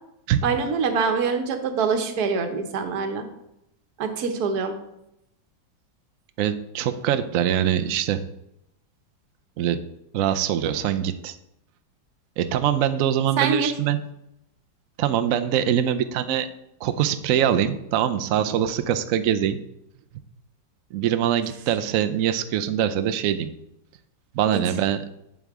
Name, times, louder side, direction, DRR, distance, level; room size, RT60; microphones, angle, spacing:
voice 1, 0.4-3.3 4.0-4.7 13.4-13.7 24.5-24.6, right 5 dB, 60° right, 6 dB, 1.4 m, -24 dB
voice 2, 6.4-8.2 9.6-9.8 10.1-11.4 12.4-14.0 15.0-16.5 16.8-19.6 20.9-23.5 24.3-25.0, right 10 dB, 75° right, 9 dB, 0.7 m, -23 dB
8.4 x 7.5 x 3.6 m, 0.83 s
omnidirectional pair, 2.0 m